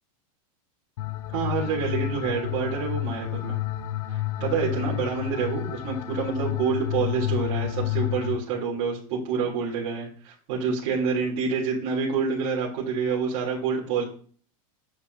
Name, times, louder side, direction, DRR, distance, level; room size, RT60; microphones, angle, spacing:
sound 1, 1.0-8.4, left 14 dB, 65° left, 0.7 m, -30 dB
voice 1, 1.3-3.6 4.1-14.0, right 5 dB, 40° right, -5 dB, 3.6 m, -27 dB
9.8 x 7.3 x 2.8 m, 0.43 s
supercardioid pair, 170°, 18 cm